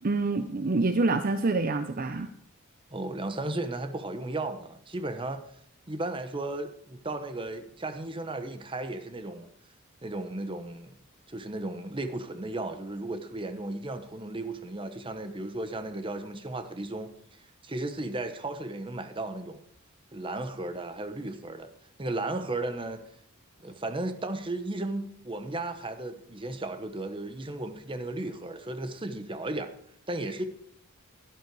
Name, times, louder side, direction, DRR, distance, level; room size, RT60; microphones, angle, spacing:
voice 1, 0.0-2.3, right 3 dB, 45° right, 9 dB, 0.6 m, -26 dB
voice 2, 2.9-5.4 5.9-9.5 10.0-10.9 11.3-17.1 17.6-19.6 20.1-21.7 22.0-23.0 23.6-29.7 30.1-30.4, right 2 dB, 25° right, 9 dB, 1.0 m, -35 dB
11.5 x 11.0 x 4.7 m, 0.67 s
head